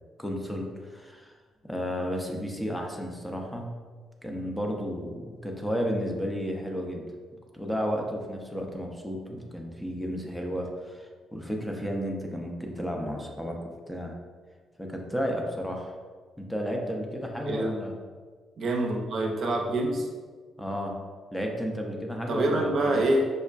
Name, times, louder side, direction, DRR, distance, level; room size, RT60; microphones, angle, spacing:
voice 1, 0.2-1.4 1.6-3.7 4.2-7.1 7.5-13.6 13.9-14.1 14.8-15.9 16.4-17.9 20.6-21.0 21.3-23.0, equal, 5° left, 1 dB, 0.5 m, -32 dB
voice 2, 18.6-20.1 22.3-23.2, right 1 dB, 60° right, 1 dB, 0.5 m, -26 dB
5.2 x 2.1 x 2.4 m, 1.5 s
cardioid pair, 90°, 0 cm